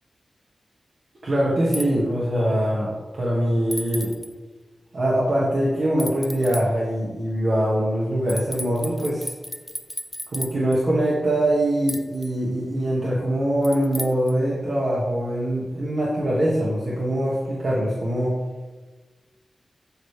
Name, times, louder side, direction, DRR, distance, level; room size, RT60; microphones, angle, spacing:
voice 1, 1.2-4.1 4.9-9.3 10.3-18.3, right 1 dB, 65° right, -7 dB, 1.8 m, -23 dB
sound 1, 1.7-1.9 3.7-4.3 6.0-6.6 8.3-10.8 11.9-12.3 13.6-14.3, equal, 10° left, 0.8 m, -34 dB
12.0 x 4.9 x 3.4 m, 1.3 s
cardioid pair, 45°, 0 cm